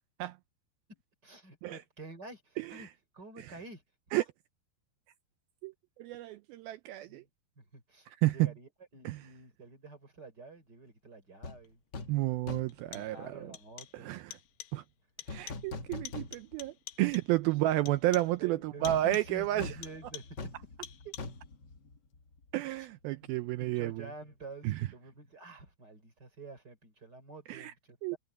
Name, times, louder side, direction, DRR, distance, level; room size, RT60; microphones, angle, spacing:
voice 1, 0.9-2.9 3.1-3.8 7.1-7.3 7.6-11.8 12.9-14.1 18.4-21.2 22.6-22.9 23.2-23.3 23.6-28.2, right 3 dB, 25° right, 4.2 m, -49 dB
voice 2, 2.6-2.9 4.1-4.2 5.6-5.7 6.0-7.2 8.2-8.5 9.0-9.2 12.1-13.5 13.9-14.4 14.7-14.8 15.3-19.8 22.5-24.1 24.6-24.8 27.5-27.7 28.0-28.2, right 16 dB, 85° right, 2.1 m, -31 dB
sound 1, 11.4-11.6 11.9-12.2 12.5-12.9 15.3-16.7 17.1-17.2 18.8-22.5 22.8-22.9, left 3 dB, 60° left, 1.1 m, -43 dB
sound 2, 11.7-11.8 12.7-13.3 13.5-14.1 14.3-14.9 15.2-15.8 16.1-17.4 17.9-18.4 18.9-19.4 19.8-20.5 20.8-21.5, left 14 dB, 80° left, 3.3 m, -49 dB
omnidirectional pair, 4.9 m